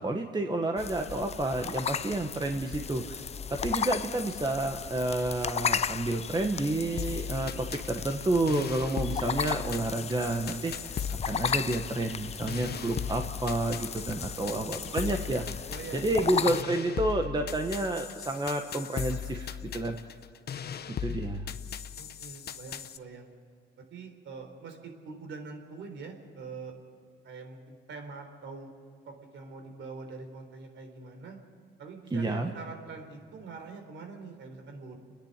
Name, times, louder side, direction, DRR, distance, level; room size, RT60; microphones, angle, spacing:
voice 1, 0.0-3.3 3.6-11.0 11.2-15.4 15.9-20.0 21.0-21.4 32.1-32.5, right 2 dB, 20° right, 4 dB, 1.3 m, -30 dB
sound 1, 0.8-16.6, left 7 dB, 30° left, 0.5 m, -35 dB
sound 2, 7.0-23.0, left 8 dB, 55° left, 0.9 m, -38 dB
voice 2, 14.4-15.3 15.7-16.5 22.0-23.3 23.8-26.7 27.2-28.7 29.1-31.4 31.8-35.0, right 4 dB, 70° right, 4 dB, 4.0 m, -44 dB
30.0 x 10.5 x 9.0 m, 2.1 s
cardioid pair, 90°, 20 cm